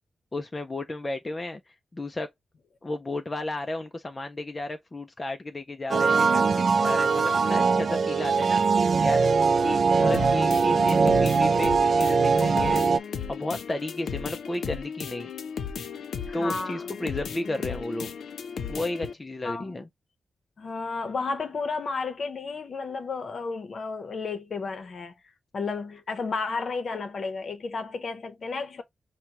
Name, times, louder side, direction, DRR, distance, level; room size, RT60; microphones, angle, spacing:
voice 1, 0.3-2.3 2.8-9.3 9.6-12.8 13.3-15.3 16.3-18.1 18.7-19.9, left 2 dB, 20° left, 0.4 m, -33 dB
sound 1, 5.9-13.0, right 5 dB, 50° right, 0.3 m, -21 dB
voice 2, 10.0-10.5 16.3-16.9 19.4-19.8 20.6-25.2 25.5-28.8, left 4 dB, 50° left, 0.7 m, -32 dB
sound 2, 10.1-19.1, left 6 dB, 85° left, 0.5 m, -36 dB
5.8 x 2.1 x 2.9 m
wide cardioid pair, 160°, 0 cm